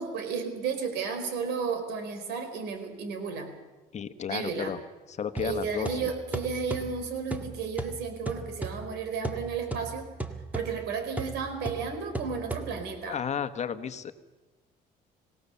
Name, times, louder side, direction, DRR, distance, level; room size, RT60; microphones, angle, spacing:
voice 1, 0.0-3.5 4.3-4.7 5.4-10.1 10.5-13.2, right 5 dB, 80° right, 7 dB, 4.4 m, -33 dB
voice 2, 3.9-4.8 5.1-6.1 13.0-14.1, left 8 dB, 40° left, 10 dB, 1.3 m, -33 dB
sound 1, 5.4-13.1, right 2 dB, 10° right, 1.9 m, -38 dB
26.0 x 18.0 x 7.0 m, 1.2 s
cardioid pair, 110°, 17 cm